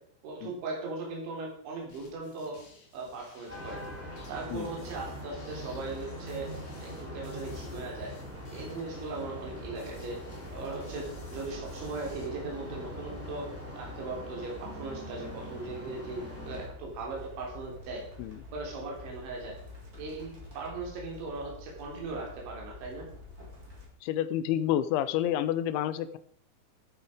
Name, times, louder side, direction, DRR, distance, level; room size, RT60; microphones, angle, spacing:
voice 1, 0.2-2.5 2.9-3.8 4.3-6.5 6.8-8.1 8.5-10.2 10.5-13.5 13.8-18.0 18.5-19.6 20.0-23.1, right 3 dB, 75° right, -1 dB, 5.8 m, -38 dB
sound 1, 1.9-12.3, left 4 dB, 45° left, 3.1 m, -56 dB
sound 2, 3.5-16.7, left 1 dB, 5° right, 2.2 m, -42 dB
sound 3, 16.2-23.8, left 2 dB, 20° right, 3.1 m, -48 dB
voice 2, 24.0-26.2, left 11 dB, 85° left, 14 dB, 3.0 m, -29 dB
14.0 x 8.6 x 5.0 m, 0.63 s
omnidirectional pair, 5.3 m